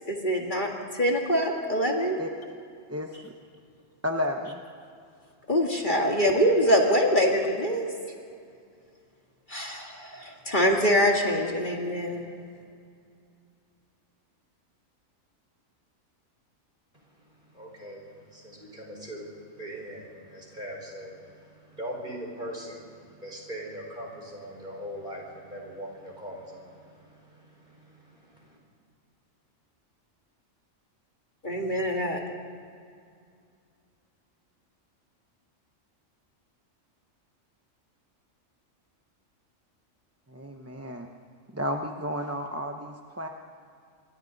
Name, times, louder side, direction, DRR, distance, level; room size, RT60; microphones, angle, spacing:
voice 1, 0.1-2.2 5.5-7.9 9.5-12.2 31.4-32.2, equal, 35° left, 0 dB, 2.1 m, -24 dB
voice 2, 2.9-3.3 4.0-4.6 40.3-41.1 41.5-43.3, left 1 dB, 15° right, 3 dB, 0.8 m, -32 dB
voice 3, 17.5-28.6, equal, 35° right, -1 dB, 5.1 m, -41 dB
27.5 x 24.0 x 4.0 m, 2.3 s
omnidirectional pair, 1.4 m